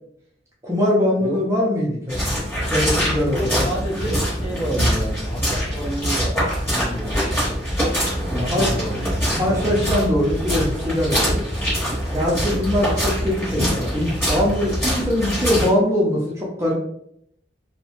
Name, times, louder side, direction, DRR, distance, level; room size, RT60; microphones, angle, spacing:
voice 1, 0.6-3.7 8.3-8.7 9.3-11.4 12.1-16.7, left 1 dB, 15° right, -5 dB, 0.5 m, -22 dB
sound 1, 2.1-15.7, equal, 15° left, 1.0 m, -24 dB
voice 2, 3.3-6.4 6.7-7.5 8.3-9.3, equal, 30° left, -4 dB, 0.7 m, -30 dB
2.8 x 2.1 x 2.8 m, 0.72 s
head